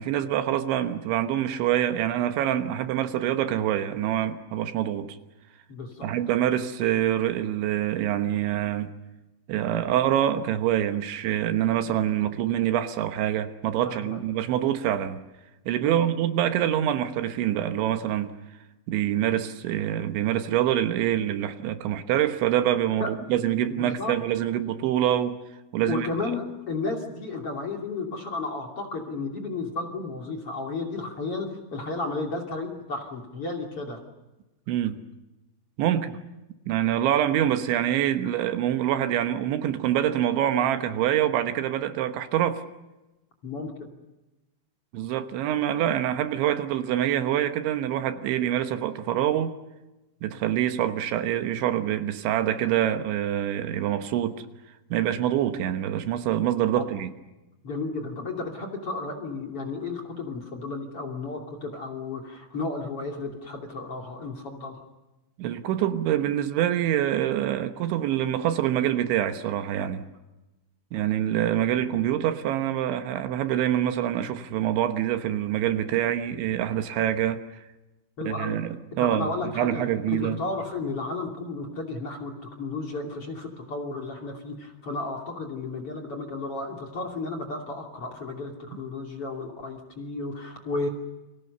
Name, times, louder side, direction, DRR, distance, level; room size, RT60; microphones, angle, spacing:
voice 1, 0.0-5.2 6.0-8.9 9.5-15.2 15.7-18.3 18.9-25.4 25.7-26.1 34.7-35.0 35.8-36.2 36.7-42.6 44.9-49.6 50.2-54.4 54.9-57.1 65.4-70.1 70.9-77.4 78.2-79.3 79.6-80.4, right 11 dB, 75° right, 3.5 m, -25 dB
voice 2, 5.7-6.1 13.8-14.2 15.8-16.1 23.0-23.1 23.7-24.2 25.8-34.0 43.4-43.9 56.7-56.9 57.6-64.7 78.2-78.6 79.0-90.9, left 3 dB, 35° left, 3.1 m, -33 dB
30.0 x 24.5 x 6.8 m
omnidirectional pair, 5.5 m